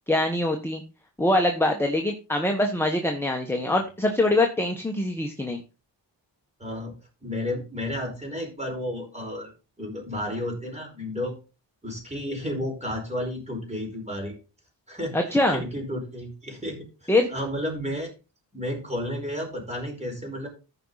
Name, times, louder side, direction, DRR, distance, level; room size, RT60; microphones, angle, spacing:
voice 1, 0.1-0.8 1.2-5.6 15.1-15.6 17.1-17.3, left 1 dB, 5° left, 3 dB, 1.3 m, -23 dB
voice 2, 6.6-6.9 7.2-9.5 9.8-11.3 11.8-14.4 14.9-15.2 15.5-18.1 18.5-20.5, left 1 dB, 15° right, 0 dB, 5.0 m, -32 dB
14.5 x 5.6 x 4.1 m, 0.31 s
wide cardioid pair, 110°, 44 cm